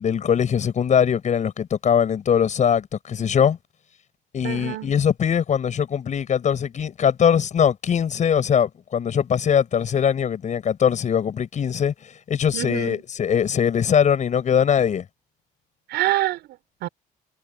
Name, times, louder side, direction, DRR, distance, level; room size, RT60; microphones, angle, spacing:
voice 1, 0.0-3.6 4.3-11.9 12.3-15.0, left 8 dB, 45° left, 7.3 m, -21 dB
voice 2, 4.4-4.9 12.5-13.0 15.9-16.9, right 16 dB, 80° right, 5.9 m, -26 dB
cardioid pair, 110°, 17 cm